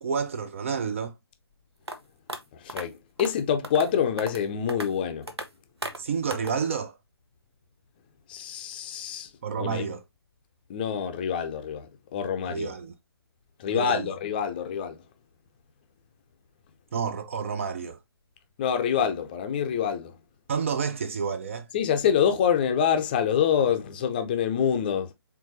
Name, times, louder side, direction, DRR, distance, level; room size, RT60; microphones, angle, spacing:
voice 1, 0.0-1.1 6.0-7.0 9.4-10.0 12.5-12.9 13.7-14.1 16.9-18.0 20.5-21.7, right 6 dB, 30° right, 0.4 m, -30 dB
sound 1, 1.9-2.0 2.3-2.4 2.7-2.8 3.2-3.3 3.6-3.9 4.2-4.4 4.7-4.9 5.3-5.5 5.8-6.0 6.3-6.5, right 2 dB, 80° right, 1.0 m, -35 dB
voice 2, 2.5-5.3 8.3-9.3 9.6-9.9 10.7-12.7 13.6-15.0 18.6-20.1 21.7-25.1, left 8 dB, 20° left, 0.6 m, -26 dB
4.7 x 3.7 x 2.6 m
figure-of-eight pair, 140°, 13 cm